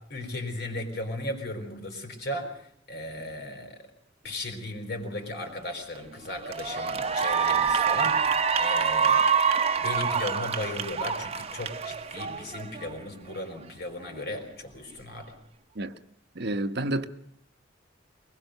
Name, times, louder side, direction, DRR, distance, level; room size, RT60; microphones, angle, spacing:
voice 1, 0.1-2.5 2.9-3.8 4.2-8.3 8.6-9.2 9.8-15.3, left 1 dB, 55° left, 4.9 m, -36 dB
Cheering / Applause, 5.7-6.0 6.4-12.9, right 6 dB, 30° right, 1.1 m, -26 dB
voice 2, 16.3-17.1, right 2 dB, 60° right, 1.0 m, -29 dB
22.5 x 20.5 x 6.7 m
head